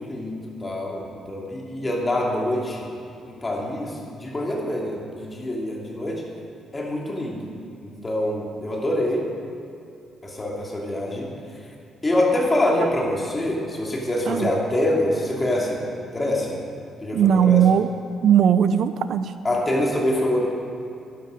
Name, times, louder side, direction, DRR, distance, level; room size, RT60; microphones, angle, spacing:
voice 1, 0.0-2.9 3.2-6.2 6.7-7.5 7.8-9.2 10.2-11.3 12.0-15.8 16.1-16.6 17.0-17.7 19.4-20.5, left 1 dB, 25° left, -2 dB, 2.8 m, -25 dB
voice 2, 17.1-17.9 18.2-19.2, right 9 dB, 65° right, 11 dB, 0.5 m, -18 dB
12.0 x 11.0 x 5.2 m, 2.6 s
cardioid pair, 90°, 0 cm